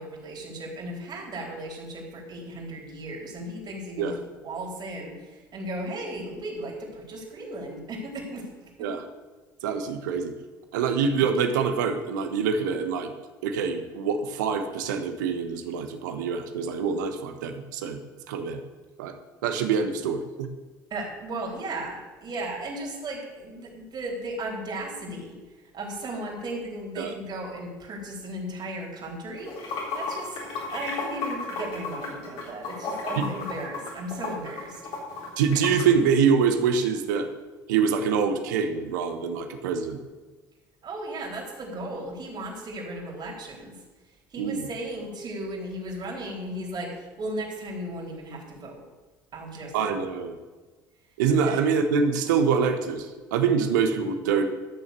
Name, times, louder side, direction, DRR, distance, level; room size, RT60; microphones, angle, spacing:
voice 1, 0.0-8.9 20.9-25.4 25.7-30.4 30.7-34.9 40.8-43.8 44.3-48.8 49.3-50.0 51.4-51.6, right 1 dB, 45° right, 0 dB, 4.0 m, -36 dB
voice 2, 9.6-10.3 10.7-13.1 13.4-18.0 18.3-18.6 19.0-19.1 19.4-20.5 27.0-27.1 33.2-33.3 35.4-37.3 37.7-40.0 44.4-44.7 49.7-50.4 51.2-53.1 53.3-54.4, right 6 dB, 80° right, 7 dB, 1.2 m, -25 dB
Water / Sink (filling or washing), 29.4-35.8, left 3 dB, 60° left, 3.9 m, -33 dB
13.0 x 6.7 x 6.7 m, 1.3 s
hypercardioid pair, 65°, 10 cm